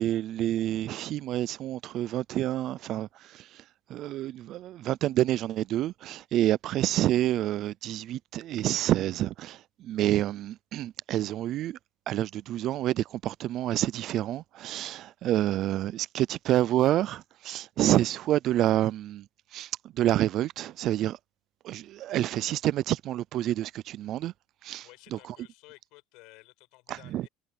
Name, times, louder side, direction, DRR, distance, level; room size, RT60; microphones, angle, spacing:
voice 1, 0.0-3.5 3.9-11.8 12.1-19.2 19.5-19.7 20.0-21.2 21.6-24.3 24.6-24.9 26.9-27.3, right 13 dB, 55° right, 0.5 m, -28 dB
voice 2, 24.8-27.3, left 23 dB, 70° left, 7.1 m, -54 dB
supercardioid pair, 115°, 0 cm